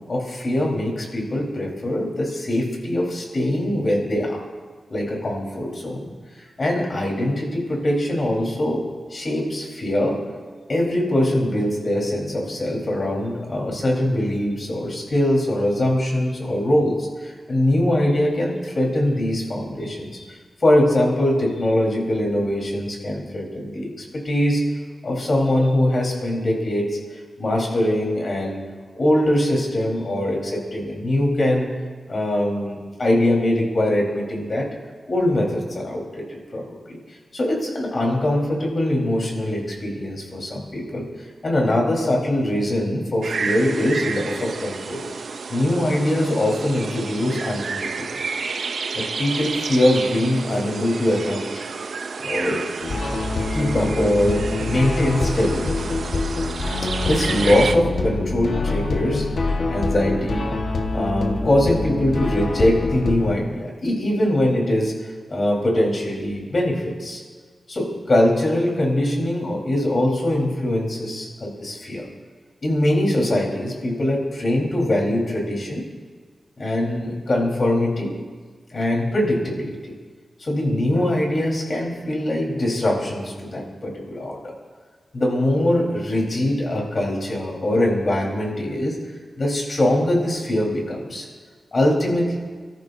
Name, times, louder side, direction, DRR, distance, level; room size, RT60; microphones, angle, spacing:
voice 1, 0.1-4.4 4.9-8.8 9.1-10.2 10.7-24.7 25.0-28.6 28.9-31.7 32.1-34.7 35.1-37.0 37.3-45.0 45.5-48.4 48.9-51.4 52.2-52.6 53.5-55.9 57.0-60.5 60.9-67.2 67.7-72.1 72.6-75.9 76.6-78.2 78.7-79.9 80.4-84.5 85.1-89.0 89.4-91.3 91.7-92.4, left 1 dB, 50° left, -1 dB, 4.2 m, -22 dB
sound 1, 43.2-57.7, right 4 dB, 75° right, 0.7 m, -30 dB
sound 2, 52.8-63.3, left 3 dB, 75° left, 1.5 m, -25 dB
29.5 x 14.0 x 2.7 m, 1.5 s
wide cardioid pair, 90°, 0 cm